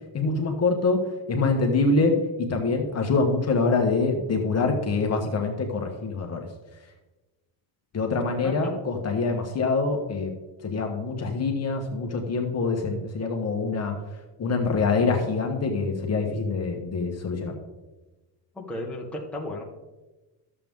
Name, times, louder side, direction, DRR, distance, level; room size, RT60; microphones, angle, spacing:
voice 1, 0.1-1.0 1.3-2.1 2.4-6.4 7.9-10.3 10.6-13.9 14.4-17.5, left 3 dB, 30° left, 2 dB, 1.2 m, -25 dB
voice 2, 8.4-8.8 18.5-19.6, left 1 dB, ahead, -3 dB, 1.2 m, -34 dB
12.5 x 7.6 x 3.6 m, 1.1 s
cardioid pair, 150°, 49 cm